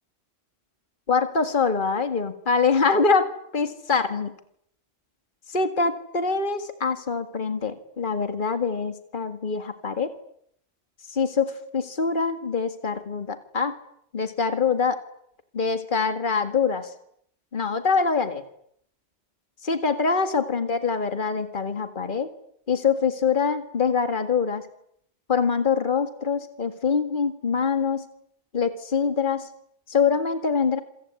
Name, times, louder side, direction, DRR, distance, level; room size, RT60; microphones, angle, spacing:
voice 1, 1.1-4.3 5.5-10.1 11.1-13.7 14.1-15.0 15.5-16.9 17.5-18.4 19.6-22.3 22.7-24.7 25.3-28.0 28.5-29.5 29.9-30.8, left 5 dB, 50° left, 8 dB, 2.1 m, -24 dB
27.5 x 24.0 x 8.5 m, 0.71 s
omnidirectional pair, 1.1 m